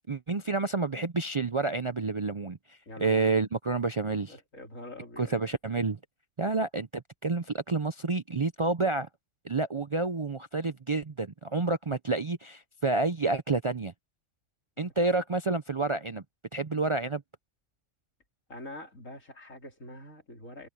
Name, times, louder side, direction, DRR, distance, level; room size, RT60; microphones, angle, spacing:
voice 1, 0.1-2.6 3.0-4.3 5.2-6.0 6.4-9.1 9.4-13.9 14.8-16.2 16.5-17.2, right 3 dB, 40° right, 0.5 m, -29 dB
voice 2, 2.9-3.4 4.1-5.4 14.8-15.2 18.5-20.7, left 1 dB, 90° left, 4.5 m, -45 dB
omnidirectional pair, 1.3 m